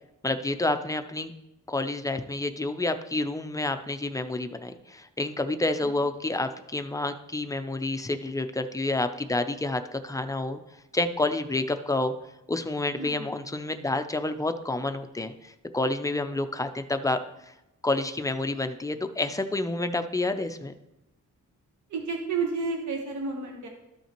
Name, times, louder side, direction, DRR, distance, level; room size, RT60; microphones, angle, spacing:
voice 1, 0.2-1.3 1.7-10.6 10.9-12.1 12.5-17.2 17.8-20.7, left 2 dB, 10° left, 8 dB, 0.4 m, -29 dB
voice 2, 12.9-13.3 21.9-23.7, right 4 dB, 65° right, 1 dB, 1.2 m, -31 dB
13.0 x 5.6 x 3.0 m, 0.90 s
wide cardioid pair, 145°, 32 cm